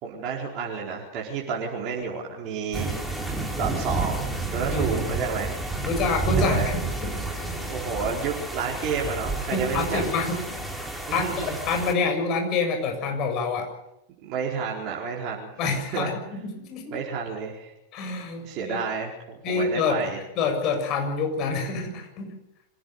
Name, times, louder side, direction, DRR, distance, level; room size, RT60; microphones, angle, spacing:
voice 1, 0.0-3.2 3.5-5.6 6.3-6.7 7.7-10.0 11.1-11.6 14.2-15.5 15.9-16.1 16.9-17.7 18.4-20.2, right 5 dB, 40° right, -3 dB, 4.5 m, -30 dB
sound 1, 2.7-11.9, right 3 dB, ahead, 3.6 m, -30 dB
voice 2, 4.7-5.2 5.8-7.5 9.5-10.4 11.1-13.7 15.6-17.0 17.9-18.8 19.4-20.0 20.4-22.3, left 4 dB, 40° left, 4 dB, 7.0 m, -27 dB
26.5 x 16.5 x 6.8 m, 0.85 s
figure-of-eight pair, 90°, 0 cm